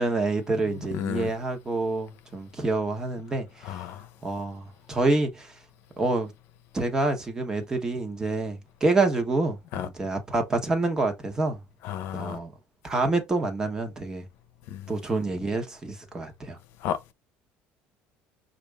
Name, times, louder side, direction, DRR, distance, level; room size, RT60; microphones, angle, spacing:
voice 1, 0.0-3.8 4.2-5.5 6.0-6.3 6.7-9.6 9.8-11.6 12.1-12.5 12.8-14.3 14.9-16.6, right 2 dB, 15° right, 1.1 m, -27 dB
voice 2, 0.7-1.3 3.6-4.0 9.7-9.9 11.8-12.4 14.7-14.9 16.8-17.0, left 10 dB, 65° left, 0.8 m, -32 dB
5.8 x 2.6 x 3.4 m
cardioid pair, 155°, 4 cm